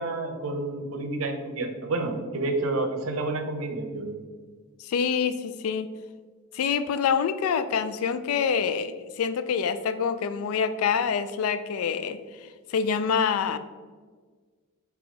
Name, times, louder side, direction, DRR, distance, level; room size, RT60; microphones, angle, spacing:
voice 1, 0.0-4.2, right 2 dB, 75° right, 6 dB, 0.6 m, -29 dB
voice 2, 4.8-5.9 6.5-12.2 12.7-13.6, left 6 dB, 85° left, 12 dB, 0.3 m, -26 dB
3.7 x 2.9 x 4.8 m, 1.5 s
head